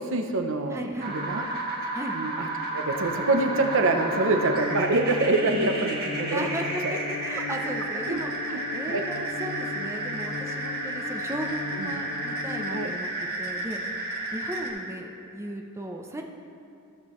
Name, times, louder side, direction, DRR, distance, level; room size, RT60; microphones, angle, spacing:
voice 1, 0.0-1.5 2.1-6.5 6.8-7.0 8.1-8.2 8.5-8.6 8.9-9.0 11.8-12.0 12.7-12.9, right 2 dB, 65° right, 5 dB, 0.7 m, -26 dB
voice 2, 0.7-1.2 1.9-2.2 6.3-13.1 13.4-13.8 14.3-16.2, right 1 dB, 15° right, 1 dB, 0.6 m, -36 dB
sound 1, 1.0-14.7, right 2 dB, 45° right, 1.5 m, -32 dB
sound 2, 2.9-12.9, left 6 dB, 50° left, 0.4 m, -38 dB
14.0 x 7.5 x 3.1 m, 2.6 s
head